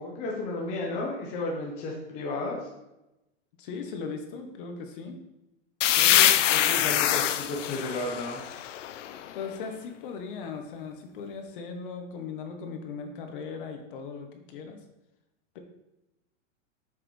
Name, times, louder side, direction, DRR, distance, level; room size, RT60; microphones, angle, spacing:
voice 1, 0.0-2.6 5.9-8.4, left 2 dB, 20° left, -1 dB, 0.8 m, -33 dB
voice 2, 3.6-5.2 9.3-14.8 15.5-15.6, left 5 dB, 45° left, 5 dB, 1.1 m, -38 dB
sound 1, 5.8-9.4, left 12 dB, 75° left, 0.6 m, -24 dB
8.0 x 5.8 x 3.2 m, 0.92 s
supercardioid pair, 170°, 37 cm